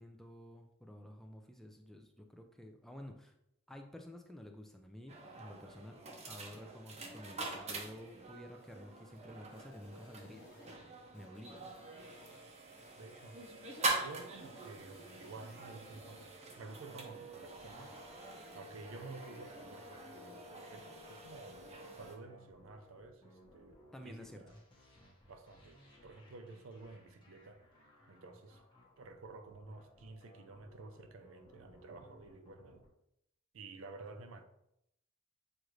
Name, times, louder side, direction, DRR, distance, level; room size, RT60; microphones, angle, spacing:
voice 1, 0.0-3.3 3.7-6.0 6.3-10.8 11.1-11.7 23.9-24.4, left 1 dB, ahead, 0.3 m, -51 dB
sound 1, 5.1-22.2, right 3 dB, 30° right, 0.7 m, -44 dB
sound 2, 9.5-10.7 11.1-12.4 12.8-14.0 14.4-15.6, left 3 dB, 45° left, 1.0 m, -61 dB
voice 2, 13.0-13.5 14.0-16.3 16.6-21.6 21.9-24.6 25.3-27.6 28.1-28.6 29.0-32.9 33.5-34.4, right 3 dB, 75° right, 0.5 m, -52 dB
sound 3, 17.5-32.9, left 1 dB, 25° left, 1.0 m, -63 dB
6.4 x 2.5 x 3.0 m
head